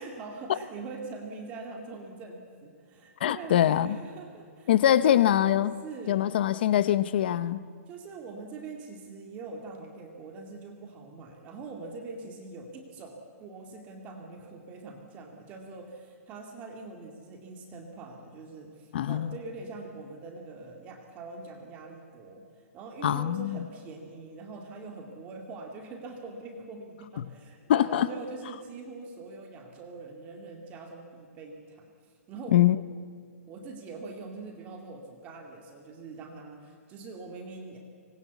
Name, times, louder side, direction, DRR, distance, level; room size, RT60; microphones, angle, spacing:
voice 1, 0.0-5.3 5.8-6.3 7.9-31.9 32.3-32.6 33.5-37.8, right 3 dB, 15° right, 2.2 m, -43 dB
voice 2, 3.2-4.0 4.7-5.8 6.1-7.6 18.9-19.3 23.0-23.6 27.7-28.1 32.5-32.8, left 11 dB, 40° left, 0.7 m, -23 dB
24.0 x 21.0 x 8.3 m
hypercardioid pair, 170°, 8 cm